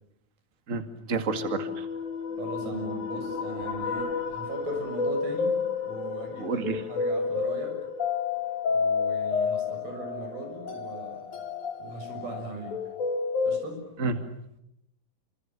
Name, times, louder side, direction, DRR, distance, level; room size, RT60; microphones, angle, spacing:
voice 1, 1.1-1.9 6.4-6.8 14.0-14.1, right 4 dB, 30° right, 8 dB, 1.7 m, -29 dB
sound 1, 1.3-13.6, left 5 dB, 55° left, 4.5 m, -30 dB
voice 2, 2.4-5.6 5.8-7.8 8.7-11.3 11.8-12.8 13.5-13.8, right 3 dB, 80° right, 4 dB, 8.7 m, -39 dB
28.0 x 26.0 x 7.5 m, 0.76 s
omnidirectional pair, 4.2 m